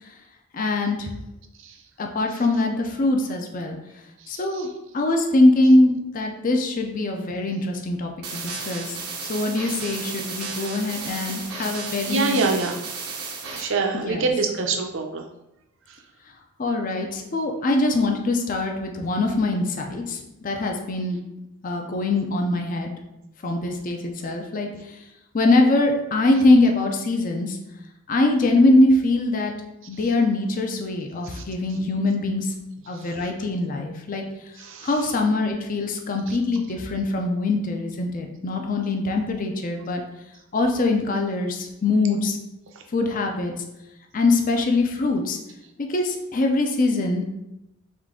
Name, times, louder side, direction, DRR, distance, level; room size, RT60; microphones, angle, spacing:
voice 1, 0.5-1.1 2.0-3.8 4.3-4.7 4.9-9.0 9.3-12.5 13.9-14.3 16.6-21.2 21.6-22.9 23.4-25.0 25.3-27.6 28.1-29.5 29.9-32.5 32.9-34.2 34.8-40.0 40.5-42.4 42.9-43.5 44.1-45.4 45.8-47.3, left 2 dB, 35° left, 3 dB, 0.4 m, -22 dB
sound 1, 8.2-13.6, right 4 dB, 85° right, 0.8 m, -33 dB
voice 2, 12.1-12.8 13.6-15.2 31.3-31.4 34.6-34.9, right 3 dB, 55° right, 2 dB, 0.6 m, -24 dB
3.7 x 3.2 x 3.6 m, 0.90 s
head